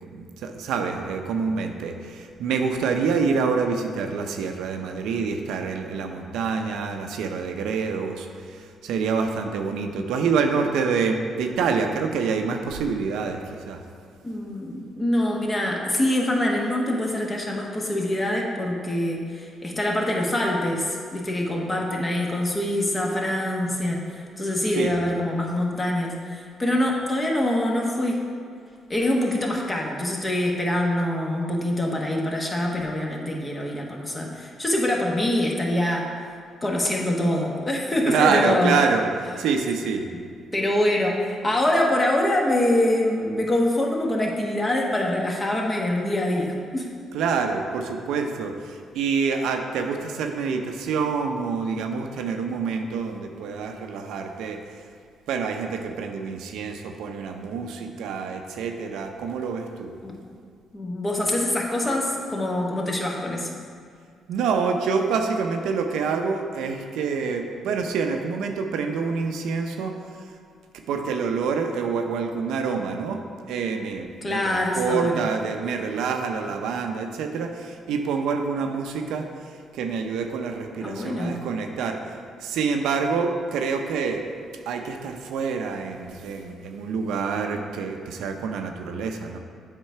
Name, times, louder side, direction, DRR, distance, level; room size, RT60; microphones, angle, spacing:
voice 1, 0.1-8.3 8.5-13.4 13.7-13.8 24.8-24.9 38.1-39.1 39.4-40.0 47.1-54.6 55.3-59.9 64.3-70.0 70.9-73.2 73.5-79.3 79.7-82.0 82.4-84.2 84.7-89.4, right 5 dB, 85° right, 4 dB, 0.6 m, -26 dB
voice 2, 14.2-24.1 24.4-28.2 28.9-36.1 36.6-38.8 40.5-46.9 60.0-60.2 60.7-63.6 74.2-75.2 80.8-81.4, left 1 dB, 25° left, -1 dB, 1.2 m, -24 dB
7.9 x 3.8 x 5.6 m, 2.2 s
cardioid pair, 90°, 0 cm